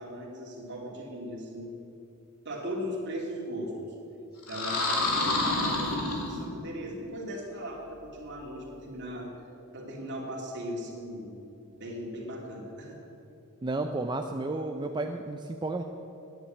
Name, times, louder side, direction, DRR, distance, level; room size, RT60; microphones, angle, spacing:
voice 1, 0.0-1.8 2.4-3.9 4.5-9.3 9.7-11.4 11.7-13.0, equal, 55° right, -2 dB, 2.9 m, -38 dB
sound 1, 4.4-6.7, left 2 dB, 90° left, 2.5 m, -28 dB
voice 2, 13.6-15.8, right 2 dB, 20° right, 4 dB, 0.5 m, -32 dB
10.5 x 9.8 x 8.7 m, 2.7 s
head